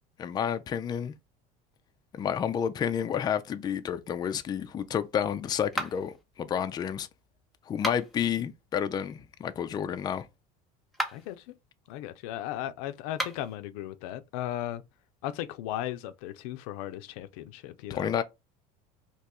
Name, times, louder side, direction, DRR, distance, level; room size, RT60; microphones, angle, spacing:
voice 1, 0.2-1.1 2.1-7.1 7.7-10.3 17.9-18.2, left 8 dB, 20° left, 0.3 m, -30 dB
sound 1, 5.7-6.2 7.7-8.3 10.8-11.4 13.1-13.6, equal, ahead, 0.7 m, -34 dB
voice 2, 11.1-11.4 11.9-14.8 15.2-18.1, left 12 dB, 85° left, 0.4 m, -36 dB
2.9 x 2.3 x 4.1 m
cardioid pair, 130°, 18 cm